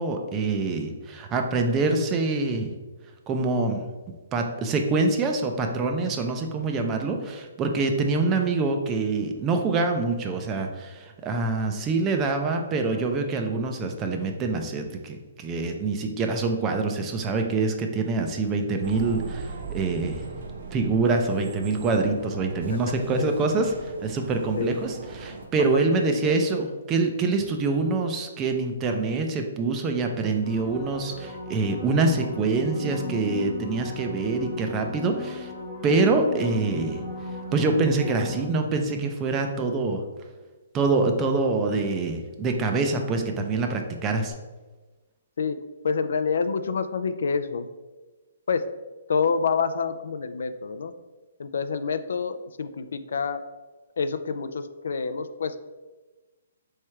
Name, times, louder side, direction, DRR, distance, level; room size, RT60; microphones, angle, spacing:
voice 1, 0.0-2.7 3.3-3.8 4.3-20.2 20.7-35.5 35.8-37.0 37.5-40.0 40.7-44.3, right 3 dB, 15° right, 4 dB, 0.4 m, -25 dB
sound 1, 18.8-25.5, right 4 dB, 65° right, 0.8 m, -39 dB
voice 2, 25.3-26.2 45.4-45.6 45.8-47.7 48.5-48.6 49.1-50.9 51.4-53.4 54.0-55.6, left 5 dB, 70° left, 10 dB, 0.3 m, -27 dB
sound 2, 30.3-39.0 44.3-44.4, left 2 dB, 40° left, 1.0 m, -36 dB
3.6 x 3.2 x 4.3 m, 1.2 s
hypercardioid pair, 160°, 0 cm